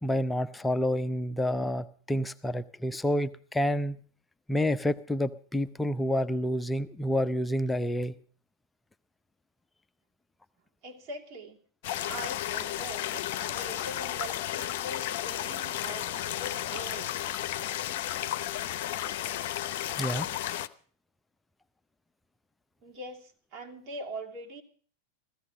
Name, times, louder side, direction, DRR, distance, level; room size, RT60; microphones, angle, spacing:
voice 1, 0.0-4.0 4.5-8.1 20.0-20.3, equal, 10° left, 12 dB, 0.7 m, -29 dB
voice 2, 10.8-11.6 12.1-17.2 22.8-24.6, right 1 dB, 40° right, 1 dB, 2.8 m, -42 dB
sound 1, 11.8-20.7, left 12 dB, 50° left, 0.8 m, -33 dB
15.5 x 15.5 x 5.1 m, 0.43 s
figure-of-eight pair, 90°, 0 cm